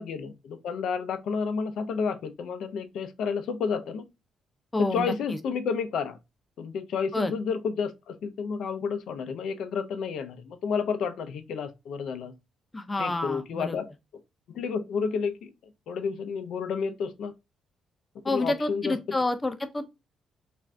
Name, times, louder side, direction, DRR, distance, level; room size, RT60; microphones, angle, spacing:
voice 1, 0.0-4.0 4.8-6.2 6.6-12.3 13.0-13.9 14.5-15.5 15.9-17.3 18.3-19.0, left 5 dB, 75° left, 0.4 m, -31 dB
voice 2, 4.7-5.1 7.1-7.3 12.7-13.8 18.2-19.9, left 2 dB, 20° left, 0.5 m, -28 dB
2.5 x 2.4 x 3.2 m
cardioid pair, 90°, 0 cm